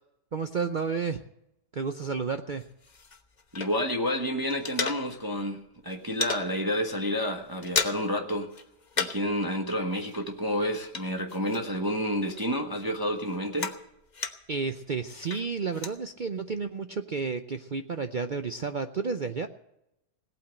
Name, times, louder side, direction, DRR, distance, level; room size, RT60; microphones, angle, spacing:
voice 1, 0.3-1.2 1.7-2.6 14.5-19.5, right 5 dB, 85° right, 7 dB, 0.4 m, -31 dB
sound 1, 2.6-4.1 4.3-5.4 5.7-6.5 6.9-7.1 7.3-8.2 8.5-9.3 9.6-11.9 12.3-14.6 15.1-16.0, left 4 dB, 30° left, 0.9 m, -35 dB
voice 2, 3.5-8.5 9.0-13.7, equal, 15° right, 3 dB, 1.2 m, -30 dB
18.0 x 8.8 x 7.7 m, 0.84 s
omnidirectional pair, 1.8 m